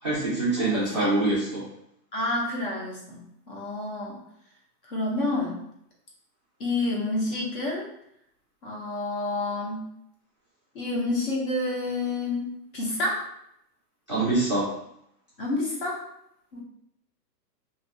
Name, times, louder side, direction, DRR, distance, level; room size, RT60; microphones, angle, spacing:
voice 1, 0.0-1.6 14.1-14.7, right 2 dB, 20° right, -12 dB, 0.4 m, -25 dB
voice 2, 0.5-1.1 2.1-4.2 4.9-5.6 6.6-7.9 8.6-9.9 10.7-13.3 15.4-16.0 16.5-16.6, left 2 dB, 35° left, -3 dB, 0.7 m, -29 dB
2.7 x 2.4 x 4.0 m, 0.76 s
hypercardioid pair, 165°, 49 cm